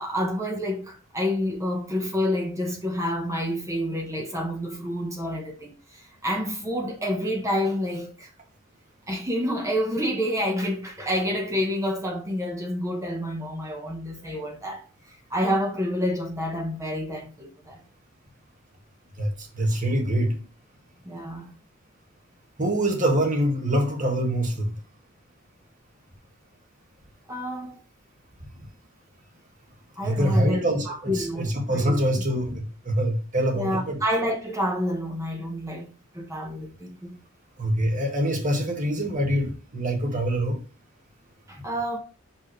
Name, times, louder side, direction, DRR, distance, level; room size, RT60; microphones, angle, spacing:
voice 1, 0.0-8.3 9.1-14.8 15.1-17.8 21.0-21.5 27.3-27.7 30.0-30.6 30.9-32.0 33.5-37.2 41.5-42.0, equal, 15° right, 1.0 m, -28 dB
voice 2, 19.2-20.4 22.6-24.8 30.0-34.0 37.6-40.6, right 1 dB, 40° right, 1.8 m, -25 dB
6.5 x 5.4 x 3.2 m
head